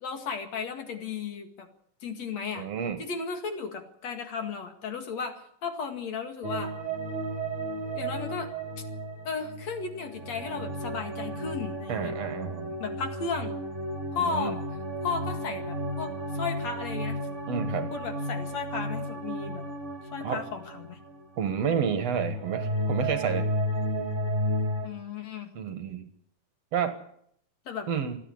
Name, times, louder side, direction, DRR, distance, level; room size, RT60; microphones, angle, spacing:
voice 1, 0.0-1.7 2.0-2.7 3.0-6.7 7.9-8.5 9.2-12.1 12.8-13.5 14.1-14.6 15.0-17.2 17.9-19.6 20.1-21.0 24.8-25.5 27.7-27.9, left 5 dB, 55° left, 6 dB, 3.1 m, -35 dB
voice 2, 2.5-3.0 11.9-12.8 14.2-14.6 17.5-17.9 20.2-20.5 21.4-23.5 25.6-26.1 26.7-27.0 27.9-28.2, right 7 dB, 60° right, 9 dB, 2.3 m, -30 dB
sound 1, 6.4-21.7 21.9-24.9, equal, 20° right, 3.0 m, -33 dB
26.5 x 10.5 x 9.9 m, 0.67 s
omnidirectional pair, 3.7 m